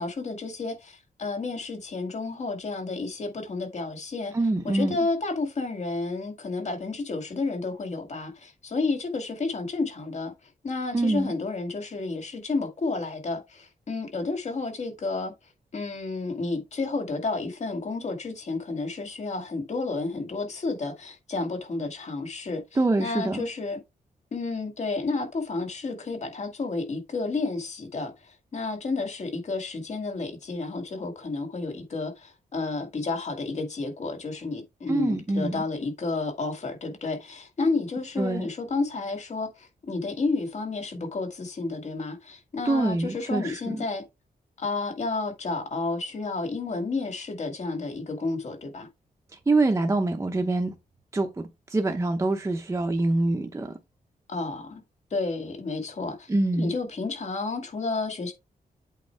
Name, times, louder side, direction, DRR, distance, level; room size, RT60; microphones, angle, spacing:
voice 1, 0.0-4.3 4.6-10.3 10.6-15.3 15.7-22.6 23.0-23.8 24.3-44.0 44.6-48.9 54.3-54.8 55.1-56.3 56.6-58.3, left 3 dB, 50° left, 2.1 m, -31 dB
voice 2, 4.3-5.0 10.9-11.3 22.8-23.4 34.9-35.6 38.2-38.5 42.6-43.8 49.3-50.7 51.1-53.7 56.3-56.7, right 2 dB, 20° right, 0.8 m, -25 dB
8.1 x 4.6 x 3.4 m
wide cardioid pair, 145°, 15 cm